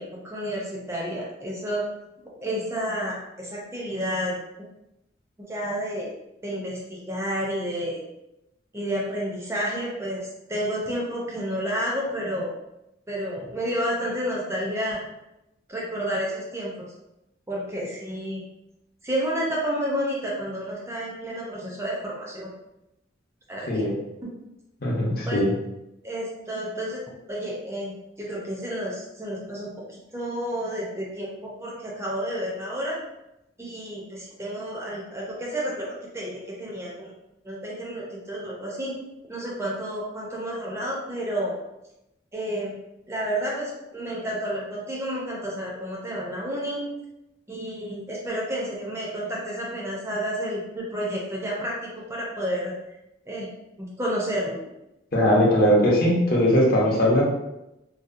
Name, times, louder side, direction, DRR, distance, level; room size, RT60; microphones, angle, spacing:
voice 1, 0.0-1.8 2.4-4.3 5.5-6.1 6.4-8.0 8.7-12.5 13.1-15.0 15.7-16.8 17.5-18.4 19.0-22.5 23.5-23.8 25.3-25.5 26.0-27.0 27.3-33.0 33.6-37.1 37.4-39.0 39.3-41.6 42.3-42.7 43.1-46.8 47.5-51.7 52.1-52.7 53.3-53.5 53.8-54.6, equal, 15° right, -4 dB, 0.4 m, -30 dB
voice 2, 24.8-25.5 55.1-57.2, equal, 50° left, -4 dB, 0.7 m, -20 dB
2.7 x 2.0 x 2.4 m, 0.90 s
head